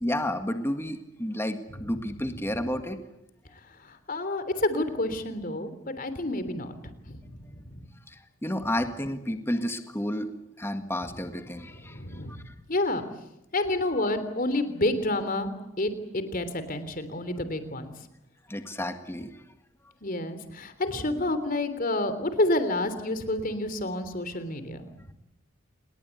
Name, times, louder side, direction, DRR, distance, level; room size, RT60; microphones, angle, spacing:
voice 1, 0.0-3.0 8.1-10.3 10.6-12.2 12.5-12.6 18.5-19.3, left 1 dB, 10° left, 7 dB, 1.8 m, -31 dB
voice 2, 3.8-6.7 7.1-7.9 11.8-12.4 12.7-13.0 13.5-15.5 15.8-17.9 20.0-24.9, left 1 dB, 45° left, 11 dB, 3.2 m, -29 dB
28.5 x 21.0 x 8.3 m, 0.90 s
head